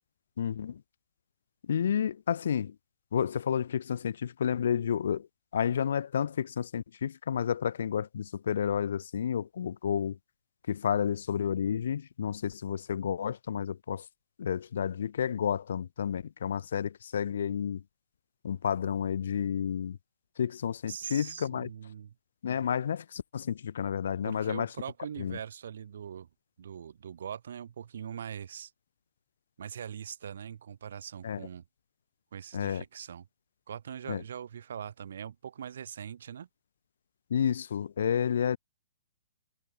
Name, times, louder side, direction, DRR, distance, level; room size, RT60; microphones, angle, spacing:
voice 1, 0.4-0.8 1.7-2.8 3.1-5.3 5.5-10.2 10.7-14.1 14.4-17.8 18.4-20.0 20.4-21.7 22.4-24.7 25.2-25.4 31.2-31.5 32.5-32.8 34.1-34.2 37.3-38.6, left 8 dB, 65° left, 0.4 m, -31 dB
voice 2, 20.9-22.1 24.2-26.3 26.6-28.7 29.6-31.6 32.3-33.3 33.7-36.5, right 8 dB, 65° right, 1.5 m, -42 dB
hypercardioid pair, 165°, 0 cm